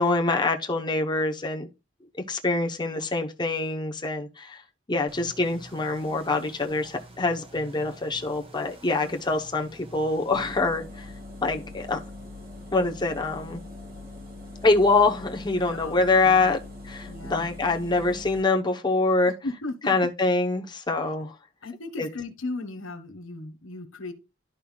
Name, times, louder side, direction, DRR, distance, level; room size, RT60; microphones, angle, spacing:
voice 1, 0.0-1.7 2.3-4.6 4.9-11.1 11.4-12.0 12.7-13.6 14.6-16.6 16.9-19.3 19.9-21.3 22.0-22.1, left 3 dB, 25° left, 0.9 m, -25 dB
sound 1, 5.1-10.6, right 1 dB, 30° right, 1.7 m, -48 dB
sound 2, 10.3-18.4, left 2 dB, 50° right, 2.5 m, -42 dB
voice 2, 15.6-16.5 17.1-17.5 19.4-20.0 21.6-24.1, left 2 dB, 80° left, 1.3 m, -36 dB
11.5 x 5.5 x 2.3 m
head